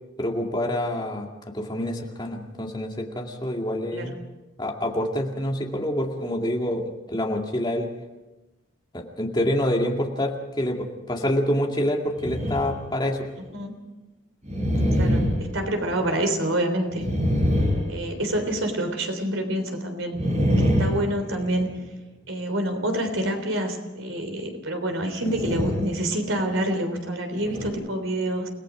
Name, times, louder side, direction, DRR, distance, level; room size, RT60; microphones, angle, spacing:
voice 1, 0.2-1.3 1.5-4.2 4.6-7.9 8.9-13.3 14.7-15.0, left 1 dB, 20° left, 0 dB, 2.3 m, -27 dB
sound 1, 12.2-12.9 13.3-13.4 14.4-16.3 16.9-18.6 20.1-21.9 25.2-26.0 26.4-26.6 27.3-27.7, equal, 35° right, 5.2 m, -25 dB
voice 2, 15.0-17.1 17.9-20.2 20.6-21.7 22.3-28.5, right 1 dB, 80° right, 5 dB, 3.5 m, -27 dB
29.0 x 18.5 x 5.1 m, 1.1 s
head